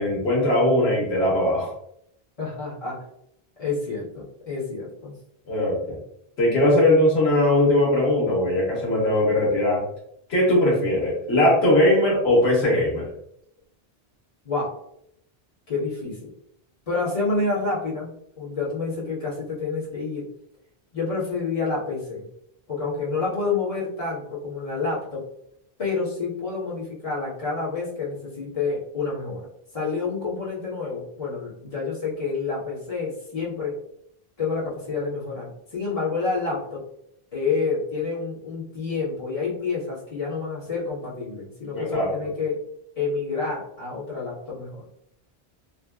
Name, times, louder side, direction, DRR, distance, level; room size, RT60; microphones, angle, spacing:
voice 1, 0.0-1.7 5.5-6.0 6.4-9.8 10.3-13.1 41.7-42.1, left 1 dB, 85° left, -4 dB, 1.3 m, -20 dB
voice 2, 2.4-3.1 3.6-5.1 14.4-14.7 15.7-16.3 16.9-18.1 18.4-20.3 20.9-22.2 22.7-25.2 25.8-29.4 29.7-33.7 34.4-36.8 37.3-42.6 43.0-44.9, left 4 dB, 35° left, -7 dB, 1.2 m, -28 dB
3.8 x 2.1 x 2.3 m, 0.73 s
omnidirectional pair, 1.1 m